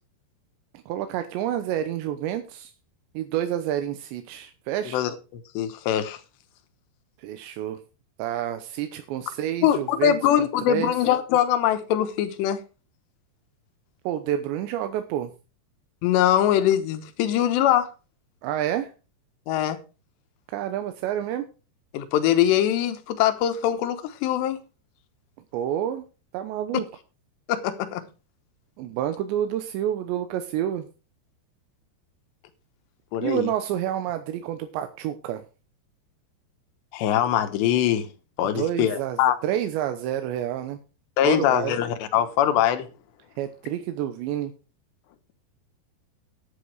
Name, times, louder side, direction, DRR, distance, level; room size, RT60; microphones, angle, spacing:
voice 1, 0.9-2.7 3.1-5.0 7.2-7.8 8.2-10.9 14.1-15.3 18.4-18.9 20.5-21.5 25.5-26.0 26.3-26.9 28.8-30.9 33.2-35.4 38.4-40.8 41.2-41.8 43.4-44.5, right 11 dB, 90° right, 3.2 m, -29 dB
voice 2, 4.9-6.2 9.6-12.6 16.0-17.9 19.5-19.8 21.9-24.6 27.5-28.1 33.1-33.5 36.9-38.1 38.4-39.4 41.2-42.9, left 11 dB, 80° left, 3.3 m, -22 dB
10.0 x 9.6 x 4.8 m
omnidirectional pair, 5.0 m